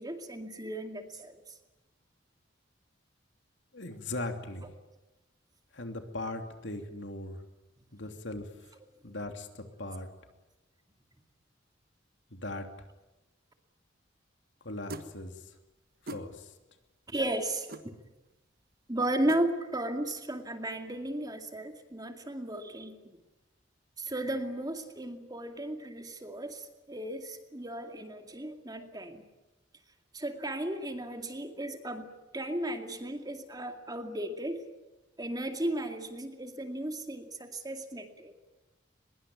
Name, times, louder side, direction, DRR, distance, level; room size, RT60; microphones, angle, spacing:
voice 1, 0.0-1.4 17.1-17.9 18.9-23.2 24.0-29.2 30.1-34.7 35.2-38.3, right 1 dB, 20° right, 6 dB, 2.2 m, -35 dB
voice 2, 3.7-4.7 5.7-7.4 7.9-8.7 9.0-10.1 12.3-12.7 14.6-15.5 16.0-16.5, left 2 dB, 65° left, 6 dB, 2.9 m, -39 dB
sound 1, 14.9-15.1 16.1-16.3 17.7-17.9 19.3-19.4, right 2 dB, 50° right, 1.5 m, -40 dB
23.0 x 21.5 x 9.4 m, 1.0 s
head